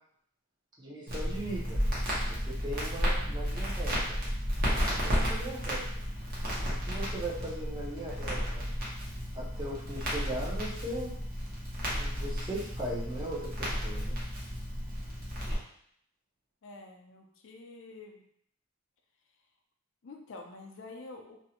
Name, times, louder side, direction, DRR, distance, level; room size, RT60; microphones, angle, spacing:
voice 1, 0.8-1.8 2.3-4.2 5.1-5.8 6.8-8.7 9.3-11.1 12.0-14.2, right 1 dB, 20° right, -4 dB, 0.5 m, -38 dB
Crackle, 1.1-15.5, equal, 45° right, 0.8 m, -33 dB
voice 2, 16.6-18.2 20.0-21.4, left 3 dB, 60° left, 3 dB, 0.4 m, -47 dB
2.6 x 2.0 x 2.8 m, 0.68 s
head